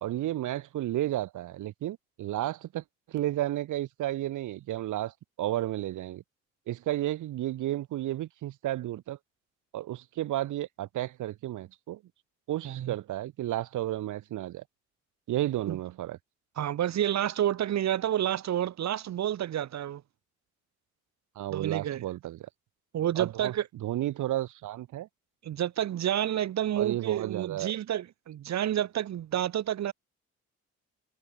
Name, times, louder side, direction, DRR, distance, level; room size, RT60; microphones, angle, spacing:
voice 1, 0.0-6.2 6.7-9.2 9.7-12.0 12.5-14.6 15.3-16.2 21.4-22.5 23.2-23.5 23.8-25.1 26.8-27.7, right 14 dB, 80° right, 2.1 m, -32 dB
voice 2, 12.6-12.9 15.7-15.8 16.6-20.0 21.5-22.0 22.9-23.6 25.4-29.9, right 11 dB, 65° right, 1.6 m, -29 dB
cardioid pair, 90°, 30 cm